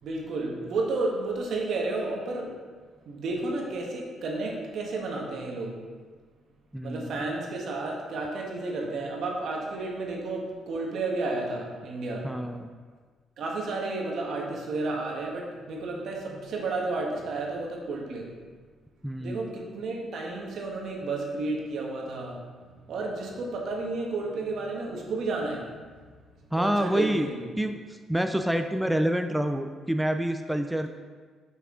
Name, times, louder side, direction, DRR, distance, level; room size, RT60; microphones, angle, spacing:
voice 1, 0.0-2.5 3.1-5.8 6.8-12.3 13.4-18.3 19.2-25.9 26.4-27.5, right 3 dB, 70° right, -1 dB, 1.3 m, -32 dB
voice 2, 6.7-7.2 12.2-12.7 19.0-19.5 26.5-27.3 27.6-27.8 28.1-30.9, equal, 5° right, 6 dB, 0.3 m, -27 dB
6.0 x 5.8 x 3.7 m, 1.6 s
cardioid pair, 90°, 0 cm